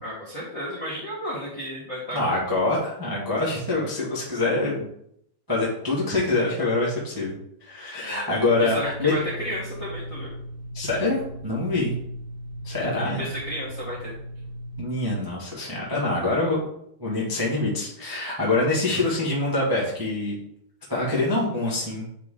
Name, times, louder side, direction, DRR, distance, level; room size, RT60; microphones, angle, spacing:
voice 1, 0.0-2.4 8.0-8.3 8.6-10.3 12.9-14.1 18.9-19.0, equal, 45° left, -7 dB, 1.1 m, -33 dB
voice 2, 2.1-4.8 5.5-9.1 10.7-11.9 12.6-13.3 14.8-16.6 17.0-20.4 20.9-22.0, left 2 dB, 15° right, -5 dB, 0.8 m, -25 dB
sound 1, 8.5-14.9, right 1 dB, 35° right, 1.3 m, -37 dB
9.2 x 3.4 x 3.8 m, 0.73 s
omnidirectional pair, 3.6 m